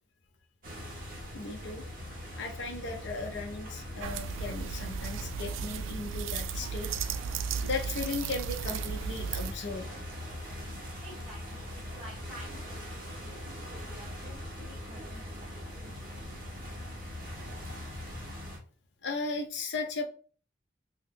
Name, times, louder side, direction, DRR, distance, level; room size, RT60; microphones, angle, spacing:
sound 1, 0.6-18.6, left 1 dB, 50° right, 1.0 m, -42 dB
voice 1, 1.3-1.8 2.4-6.9 7.6-9.9 19.0-20.0, left 3 dB, 65° left, 2 dB, 0.6 m, -36 dB
sound 2, 4.0-9.5, right 6 dB, 85° right, 0.3 m, -35 dB
voice 2, 11.0-16.1, equal, ahead, -8 dB, 1.4 m, -51 dB
2.7 x 2.3 x 3.5 m, 0.40 s
head